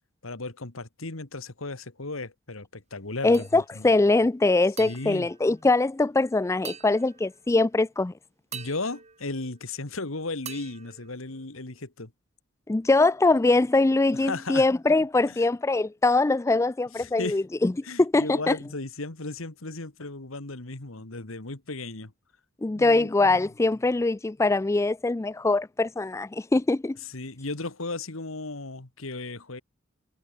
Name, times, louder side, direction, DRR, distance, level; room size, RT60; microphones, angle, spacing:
voice 1, 0.2-3.9 4.8-5.3 8.5-12.1 14.1-14.7 15.3-15.4 17.0-17.4 17.8-22.1 22.7-23.1 27.0-29.6, left 3 dB, 75° left, 2.1 m, -35 dB
voice 2, 3.2-8.1 12.7-17.7 18.0-18.5 22.6-27.0, left 2 dB, 15° left, 0.4 m, -22 dB
sound 1, 3.3-3.9 4.8-6.2 6.6-7.7 8.5-10.0 10.5-11.9, right 8 dB, 35° right, 2.4 m, -46 dB
head